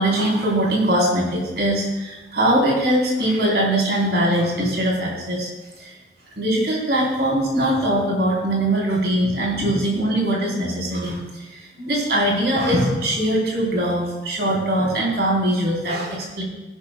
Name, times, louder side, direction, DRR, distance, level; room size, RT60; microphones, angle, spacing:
voice 1, 0.0-5.5 5.8-5.9 6.4-16.4, right 1 dB, 65° right, -3 dB, 3.9 m, -21 dB
15.0 x 11.5 x 2.3 m, 1.1 s
head